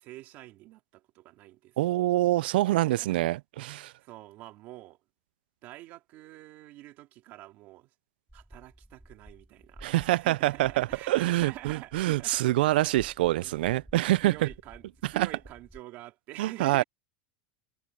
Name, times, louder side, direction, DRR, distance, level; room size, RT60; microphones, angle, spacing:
voice 1, 0.0-1.8 2.8-3.3 3.6-5.0 5.6-7.9 8.3-13.0 13.3-13.6 14.2-16.8, right 17 dB, 35° right, 3.1 m, -46 dB
voice 2, 1.8-3.9 9.8-14.5 15.0-15.3 16.4-16.8, right 16 dB, 85° right, 0.4 m, -26 dB
sound 1, 8.3-15.8, right 1 dB, ahead, 6.2 m, -54 dB
supercardioid pair, 175°, 5 cm